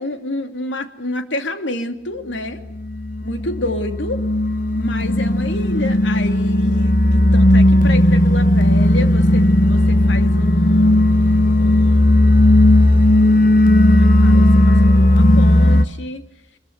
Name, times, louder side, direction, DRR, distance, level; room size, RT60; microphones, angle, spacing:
voice 1, 0.0-2.6 3.2-4.2 4.7-11.0 11.6-12.5 13.9-16.2, left 2 dB, 85° left, 7 dB, 2.8 m, -29 dB
sound 1, 2.7-15.9, left 1 dB, 50° left, 1.2 m, -14 dB
25.5 x 22.5 x 8.0 m, 0.83 s
head